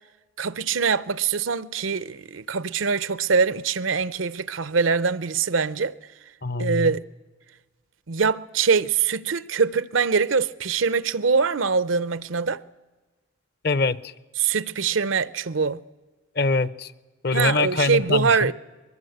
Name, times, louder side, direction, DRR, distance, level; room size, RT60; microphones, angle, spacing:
voice 1, 0.4-5.9 6.6-7.0 8.1-12.6 14.4-15.8 17.3-18.5, right 5 dB, 85° right, 0.8 m, -23 dB
voice 2, 6.4-7.0 13.6-14.1 16.4-16.9 17.2-18.5, left 3 dB, 55° left, 0.8 m, -24 dB
23.5 x 22.5 x 8.0 m
head